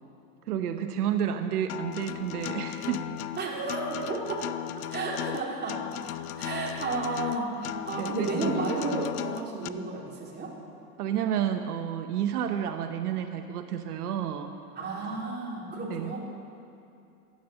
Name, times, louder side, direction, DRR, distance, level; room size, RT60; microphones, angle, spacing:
voice 1, 0.5-3.1 8.0-8.6 11.0-14.5 15.9-16.1, right 9 dB, 90° right, 7 dB, 1.0 m, -30 dB
Acoustic guitar, 1.7-9.7, left 13 dB, 80° left, 0.7 m, -36 dB
voice 2, 3.4-4.5 4.9-5.9 6.4-10.5 14.7-16.2, right 3 dB, 20° right, -3 dB, 3.2 m, -32 dB
12.5 x 9.5 x 7.6 m, 2.7 s
supercardioid pair, 120°, 44 cm